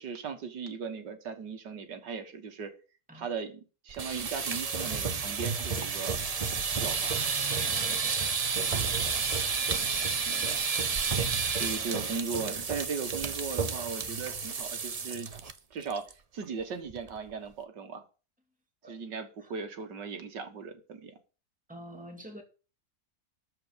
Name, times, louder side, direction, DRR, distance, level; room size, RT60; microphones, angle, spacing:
voice 1, 0.0-2.7 3.1-6.2 6.8-7.2 8.6-9.3 9.7-10.6 11.1-11.2 11.5-15.3 15.7-16.1 16.3-18.0 18.9-21.1, right 5 dB, 85° right, 2.2 m, -38 dB
sound 1, 3.9-15.5 15.8-16.1 16.4-16.5 16.9-17.3, right 5 dB, 50° right, 0.4 m, -31 dB
voice 2, 7.5-8.3 18.8-18.9 19.4-19.5 21.7-22.4, right 1 dB, 5° right, 2.3 m, -47 dB
13.5 x 4.7 x 7.2 m
omnidirectional pair, 1.8 m